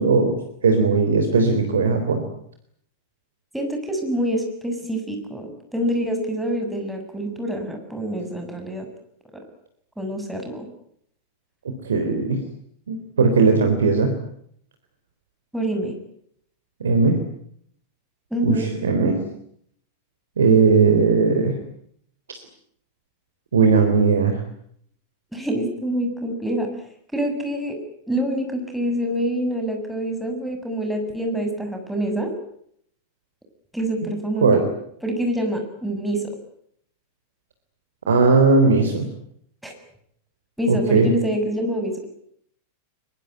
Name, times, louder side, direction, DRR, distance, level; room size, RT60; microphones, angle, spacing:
voice 1, 0.0-2.2 11.8-12.4 12.9-14.1 16.8-17.2 18.4-19.2 20.4-21.6 22.3-22.4 23.5-24.4 34.4-34.7 38.1-39.1 40.7-41.1, right 4 dB, 70° right, 6 dB, 3.6 m, -18 dB
voice 2, 3.5-8.9 10.0-10.7 15.5-16.0 18.3-18.7 25.3-26.7 27.1-27.8 28.1-32.3 33.7-34.6 35.0-36.3 39.6-39.7 40.6-42.1, equal, ahead, 3 dB, 7.3 m, -26 dB
23.0 x 23.0 x 9.4 m, 0.69 s
figure-of-eight pair, 90°, 0 cm